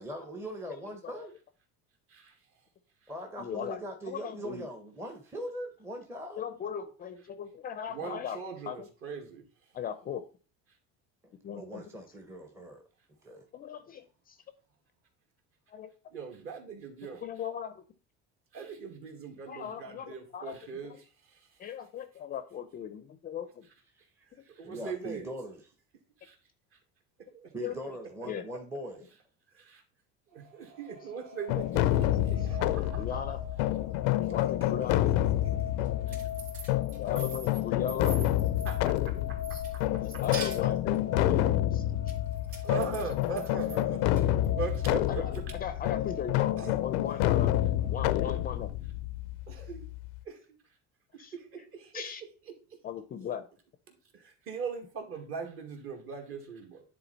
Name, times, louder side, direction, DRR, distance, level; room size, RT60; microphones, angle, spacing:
voice 1, 0.0-1.4 3.1-6.4 11.5-12.8 13.2-13.4 24.6-25.7 27.5-29.0, right 1 dB, 10° right, 3 dB, 0.8 m, -41 dB
voice 2, 3.4-3.8 4.1-4.7 6.4-8.4 8.7-8.9 9.7-10.2 11.4-11.9 13.5-14.4 15.7-15.9 17.2-17.8 19.5-20.5 20.8-21.0 21.6-23.6 27.6-27.8 28.3-28.4 33.0-33.4 34.3-35.1 37.0-38.2 39.5-42.0 45.1-47.6 47.9-48.7 51.2-51.3 51.9-52.2 52.8-53.4, left 8 dB, 30° left, 11 dB, 0.5 m, -38 dB
voice 3, 7.9-9.4 16.1-17.2 18.5-20.9 24.5-25.3 26.2-26.4 27.3-27.5 29.5-29.8 30.3-31.9 32.3-33.0 38.6-40.2 42.6-44.0 44.6-45.4 46.6-46.8 49.5-49.8 50.3-50.4 51.3-52.0 54.1-56.8, right 5 dB, 45° right, 3 dB, 2.0 m, -40 dB
sound 1, 30.3-48.5, left 8 dB, 70° right, 2.3 m, -43 dB
sound 2, 31.5-50.2, left 14 dB, 85° left, 0.5 m, -29 dB
sound 3, 35.8-39.1 39.4-41.0 42.1-43.8 44.2-44.9, right 4 dB, 85° right, 3.3 m, -44 dB
10.0 x 3.8 x 4.0 m, 0.37 s
cardioid pair, 155°, 31 cm